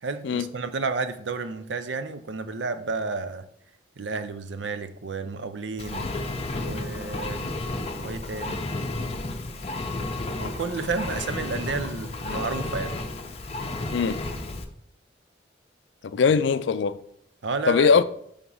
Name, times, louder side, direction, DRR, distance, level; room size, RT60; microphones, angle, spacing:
voice 1, 0.0-3.5 4.0-6.1 6.6-7.5 8.0-8.6 10.4-13.0 17.4-18.0, right 4 dB, 80° right, 0.6 m, -31 dB
Engine, 5.8-14.6, left 2 dB, 35° left, 0.6 m, -32 dB
voice 2, 16.1-17.0 17.7-18.0, left 5 dB, 80° left, 0.4 m, -20 dB
6.0 x 3.6 x 5.5 m
head